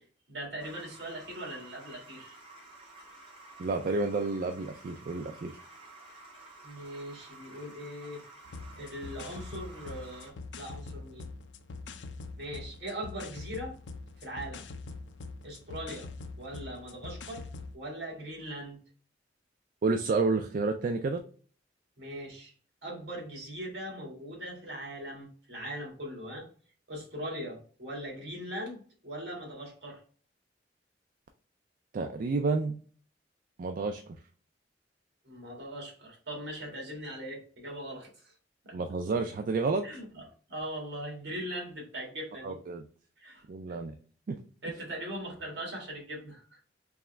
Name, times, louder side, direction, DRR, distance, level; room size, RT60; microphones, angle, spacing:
voice 1, 0.3-2.4 6.6-8.2 8.8-11.3 12.4-13.7 14.2-14.6 15.4-16.1 16.4-17.5 17.7-18.8 22.0-22.5 22.8-26.5 26.9-30.0 35.2-38.3 38.6-38.7 39.8-40.2 40.5-42.6 43.2-43.8 44.6-46.6, equal, 70° right, -1 dB, 1.7 m, -40 dB
sound 1, 0.6-10.3, right 2 dB, 35° right, 1.7 m, -52 dB
voice 2, 3.6-5.6 19.8-21.2 31.9-32.8 33.6-34.0 38.7-39.9 42.4-42.8 43.5-43.9 44.3-44.4, right 3 dB, 50° right, 6 dB, 0.3 m, -30 dB
sound 2, 8.5-17.8, left 3 dB, 75° left, 0.4 m, -44 dB
3.6 x 3.0 x 3.2 m, 0.43 s
head